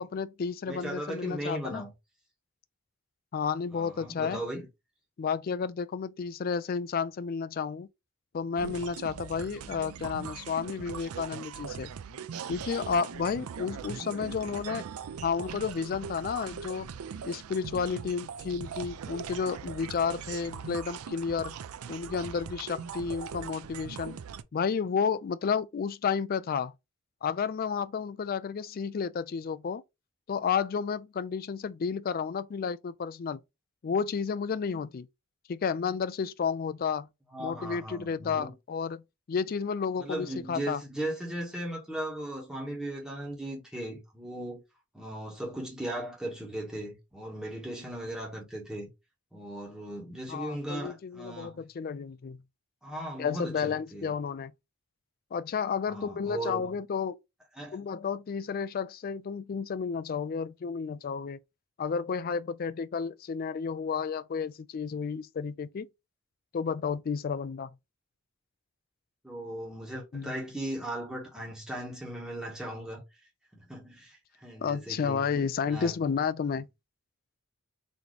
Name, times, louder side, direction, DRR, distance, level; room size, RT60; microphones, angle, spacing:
voice 1, 0.0-1.8 3.3-4.4 5.2-7.9 8.3-11.9 12.5-14.8 15.2-16.9 17.2-21.6 21.9-24.2 24.5-26.7 27.2-29.8 30.3-33.4 33.8-35.1 35.5-37.1 37.4-39.0 39.3-40.8 50.3-52.4 53.2-54.5 55.3-57.1 57.7-61.4 61.8-65.9 66.5-67.7 70.1-70.3 74.6-76.7, left 6 dB, 40° left, 0.3 m, -31 dB
voice 2, 0.6-1.9 3.7-4.7 13.7-14.4 37.3-38.5 40.0-44.6 44.9-48.9 49.3-51.6 52.8-54.1 55.9-56.8 57.5-57.8 69.2-73.0 73.5-75.2 75.6-76.0, right 1 dB, 5° right, 1.3 m, -37 dB
sound 1, 8.6-24.4, right 7 dB, 80° right, 0.4 m, -41 dB
4.1 x 2.9 x 3.2 m
head